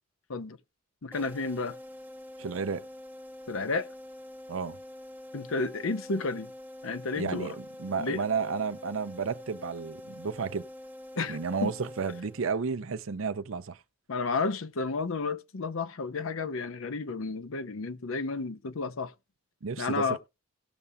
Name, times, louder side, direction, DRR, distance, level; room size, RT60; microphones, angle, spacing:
voice 1, 1.0-1.8 3.5-3.9 5.3-6.5 6.8-7.6 8.0-8.2 11.2-11.7 14.1-19.1 19.8-20.2, left 4 dB, 75° left, 0.7 m, -32 dB
sound 1, 1.1-12.8, left 1 dB, 10° right, 0.6 m, -46 dB
voice 2, 2.4-2.9 4.5-4.8 7.2-7.5 7.8-10.6 11.3-13.8 19.6-20.2, right 5 dB, 75° right, 0.6 m, -32 dB
18.0 x 6.8 x 2.3 m
head